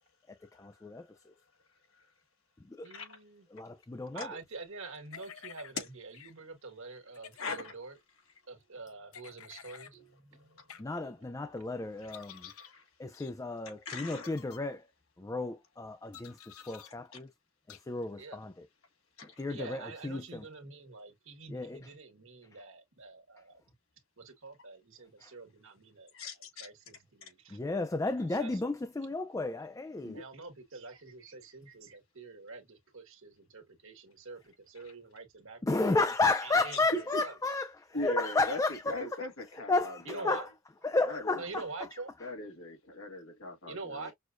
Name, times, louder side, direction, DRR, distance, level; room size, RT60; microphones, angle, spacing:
voice 1, 0.3-1.3 2.7-2.9 3.5-4.3 10.8-12.5 13.0-14.9 15.2-17.3 17.7-18.7 19.2-20.4 21.5-21.8 25.2-25.3 27.5-30.2 35.6-39.2 39.7-40.5 40.8-41.6, left 3 dB, 15° left, 0.4 m, -33 dB
voice 2, 2.8-3.5 4.1-8.0 8.5-10.9 18.2-18.4 19.5-23.6 24.2-27.6 28.4-28.6 30.1-37.4 40.0-40.5 41.4-42.1 43.7-44.1, right 3 dB, 65° right, 1.5 m, -46 dB
sound 1, 5.1-5.7 6.1-6.3 7.1-7.6 9.1-9.9 10.7-10.8 12.1-12.7 13.1-13.3 14.1-14.6 16.1-16.9 17.7-17.8, left 8 dB, 90° left, 0.7 m, -50 dB
voice 3, 7.4-7.7 9.9-10.0 12.0-12.8 13.7-14.3 19.2-19.4 26.1-26.7 27.2-27.3 30.0-30.2 36.9-37.2 37.9-38.6 38.9-40.4 41.1-41.4 42.2-44.1, left 2 dB, 70° left, 1.9 m, -40 dB
6.2 x 2.2 x 2.5 m
head